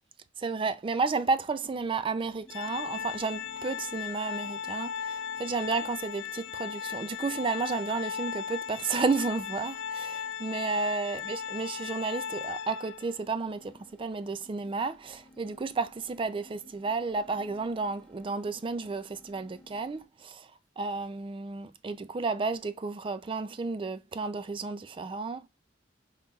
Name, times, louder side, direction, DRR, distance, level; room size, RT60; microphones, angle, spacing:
voice 1, 0.4-20.5 20.8-25.5, right 4 dB, 30° right, 0.4 m, -32 dB
sound 1, 1.6-20.0, left 1 dB, 5° left, 0.8 m, -59 dB
Organ, 2.5-13.2, left 7 dB, 85° left, 0.4 m, -37 dB
5.2 x 2.9 x 2.3 m
head